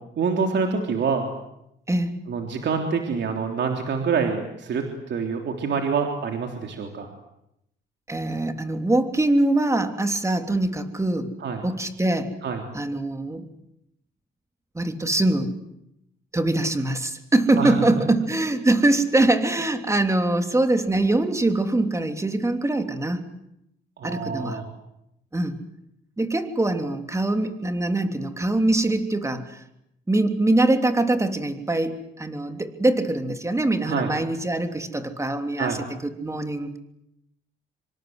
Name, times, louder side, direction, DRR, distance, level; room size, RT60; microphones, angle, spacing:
voice 1, 0.2-1.3 2.3-7.1 11.4-11.6 12.4-12.6 17.6-18.1 24.0-24.7 33.8-34.1 35.6-35.8, right 5 dB, 65° right, 3 dB, 3.5 m, -26 dB
voice 2, 8.1-11.3 11.6-12.3 12.7-13.4 14.7-15.5 16.3-23.2 24.0-24.6 25.3-25.6 26.2-29.6 30.1-36.8, right 2 dB, 15° right, 6 dB, 3.2 m, -23 dB
26.0 x 25.0 x 8.0 m, 0.81 s
cardioid pair, 90°, 20 cm